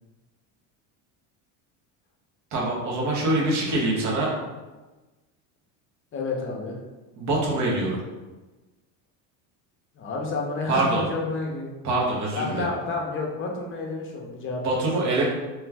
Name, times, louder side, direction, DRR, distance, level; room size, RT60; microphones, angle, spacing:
voice 1, 2.5-4.3 7.2-8.0 10.7-11.0 11.8-12.6 14.6-15.2, right 2 dB, 45° right, -3 dB, 1.1 m, -24 dB
voice 2, 6.1-6.8 9.9-11.7 12.3-15.2, left 3 dB, 35° left, 0 dB, 0.7 m, -30 dB
3.1 x 2.3 x 3.4 m, 1.2 s
cardioid pair, 125°, 38 cm